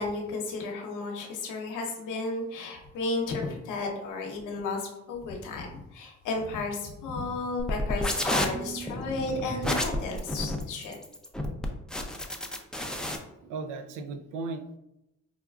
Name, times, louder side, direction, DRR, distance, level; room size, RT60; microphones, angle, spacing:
voice 1, 0.0-11.0, left 3 dB, 85° left, 1 dB, 0.8 m, -33 dB
sound 1, 7.6-13.2, left 1 dB, 5° left, 0.3 m, -31 dB
voice 2, 13.0-14.8, right 3 dB, 85° right, 7 dB, 0.5 m, -37 dB
4.9 x 2.3 x 2.3 m, 0.87 s
cardioid pair, 90°, 30 cm